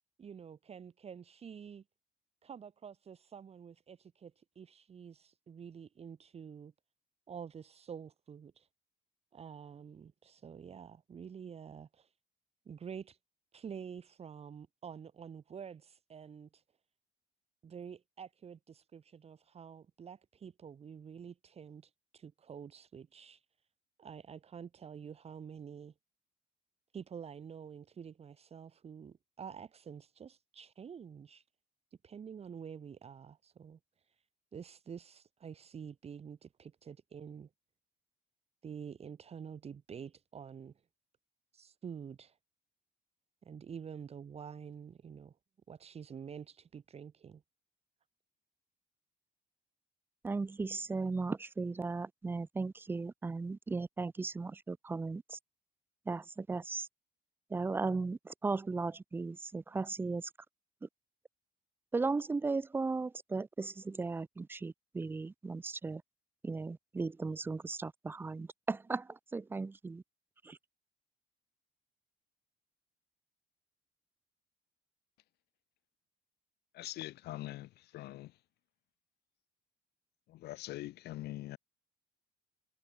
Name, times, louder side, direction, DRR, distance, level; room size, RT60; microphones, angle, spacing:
voice 1, 0.2-1.8 2.4-6.7 7.3-8.7 9.3-12.1 12.7-13.2 13.5-16.6 17.6-23.5 24.0-25.9 26.9-31.4 32.0-34.2 34.5-37.5 38.6-40.7 41.5-42.4 43.4-45.4 45.7-47.4, right 7 dB, 40° right, 2.0 m, -48 dB
voice 2, 50.2-55.4 56.1-56.9 57.5-60.3 60.8-60.9 61.9-66.0 66.4-70.0 70.4-70.6, right 3 dB, 15° right, 0.3 m, -36 dB
voice 3, 76.7-78.3 80.3-81.6, left 16 dB, 75° left, 1.9 m, -43 dB
cardioid pair, 110°, 17 cm